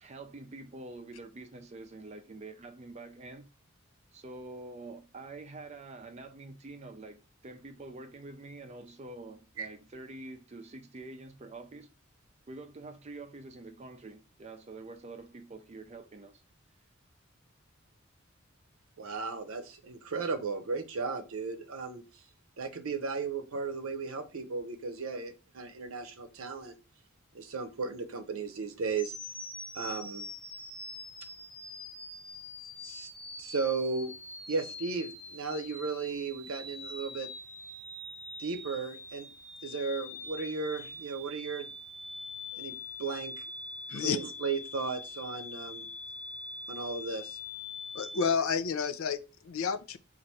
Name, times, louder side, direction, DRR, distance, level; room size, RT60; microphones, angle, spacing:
voice 1, 0.0-3.5 4.1-7.2 7.4-11.9 12.5-16.4, right 2 dB, 30° right, 0.5 m, -46 dB
voice 2, 19.0-22.0 22.6-26.8 27.3-29.1 29.7-30.3 32.8-33.1 33.4-34.1 34.5-37.3 38.4-39.3 39.6-41.7 42.5-43.4 43.9-45.9 46.7-47.4, right 4 dB, 80° right, 0.6 m, -35 dB
sound 1, 29.0-48.3, left 2 dB, 5° left, 0.8 m, -44 dB
voice 3, 47.9-50.0, left 6 dB, 80° left, 0.5 m, -30 dB
4.4 x 2.5 x 4.1 m
head